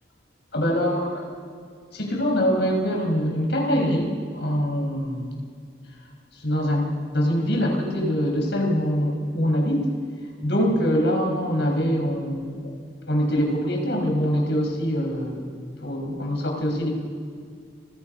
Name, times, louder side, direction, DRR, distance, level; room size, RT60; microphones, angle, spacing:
voice 1, 0.5-1.2 1.9-5.4 6.4-9.9 10.4-12.7 13.1-16.9, equal, 85° left, 2 dB, 5.7 m, -24 dB
30.0 x 22.5 x 5.5 m, 2.2 s
head